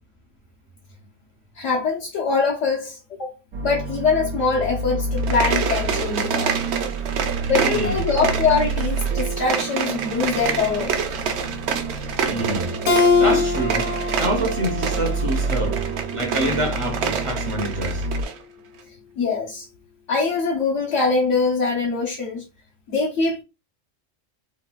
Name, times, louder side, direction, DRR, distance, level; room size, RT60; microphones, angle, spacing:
voice 1, 1.6-3.3 3.6-6.6 7.5-11.0 19.2-19.7 20.1-22.4 22.9-23.4, left 4 dB, 70° left, 1.1 m, -23 dB
sound 1, 3.5-18.3, right 3 dB, 85° right, 1.0 m, -29 dB
sound 2, 5.1-18.4, right 7 dB, 65° right, 0.8 m, -28 dB
voice 2, 7.5-8.0 12.2-15.9 16.1-18.1, right 1 dB, 35° right, 0.5 m, -27 dB
Keyboard (musical), 12.9-16.1, left 4 dB, 55° left, 0.7 m, -23 dB
4.0 x 2.2 x 2.2 m
omnidirectional pair, 1.3 m